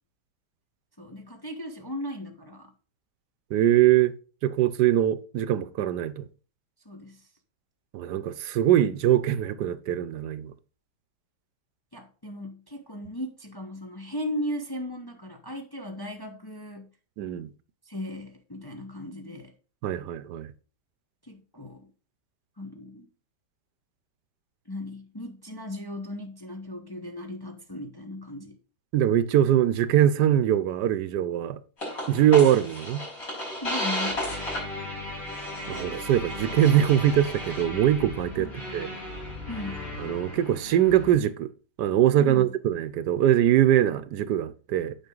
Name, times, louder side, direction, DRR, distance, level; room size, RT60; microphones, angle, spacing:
voice 1, 1.0-2.7 6.8-7.2 11.9-16.9 17.8-19.5 21.2-21.9 22.6-23.1 24.7-28.5 33.6-34.2 38.4-38.6 39.5-39.8 42.2-42.5, left 1 dB, 20° left, 0.7 m, -37 dB
voice 2, 3.5-4.1 4.4-6.3 7.9-10.5 17.2-17.5 19.8-20.5 28.9-31.6 32.1-33.1 35.7-38.5 38.7-38.9 40.0-41.5 41.8-45.0, right 11 dB, 80° right, 1.3 m, -22 dB
sound 1, 31.8-41.1, left 1 dB, 55° left, 5.7 m, -34 dB
9.0 x 6.1 x 3.8 m
omnidirectional pair, 1.8 m